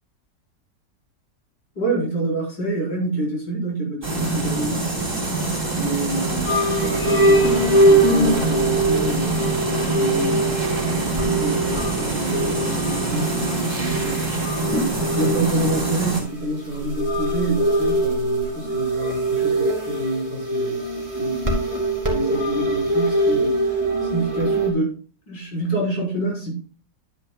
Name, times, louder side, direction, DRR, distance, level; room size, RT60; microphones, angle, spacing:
voice 1, 1.7-21.6 22.1-25.0 25.3-26.5, right 1 dB, 70° left, -3 dB, 5.1 m, -28 dB
sound 1, 4.0-16.2, right 3 dB, 30° right, 3.4 m, -25 dB
sound 2, 6.1-24.7, right 1 dB, 10° right, 2.4 m, -22 dB
11.0 x 9.7 x 2.2 m, 0.38 s
omnidirectional pair, 2.0 m